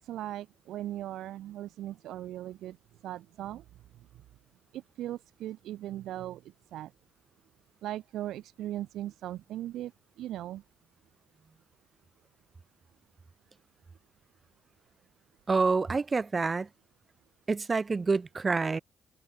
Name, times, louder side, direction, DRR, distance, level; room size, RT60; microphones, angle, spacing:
voice 1, 0.0-2.8 3.0-3.6 4.7-6.4 6.7-6.9 7.8-9.9 10.2-10.6, right 13 dB, 80° right, 5.2 m, -38 dB
voice 2, 15.5-16.7 17.5-18.8, right 4 dB, 30° right, 1.3 m, -27 dB
cardioid pair, 90°, 0 cm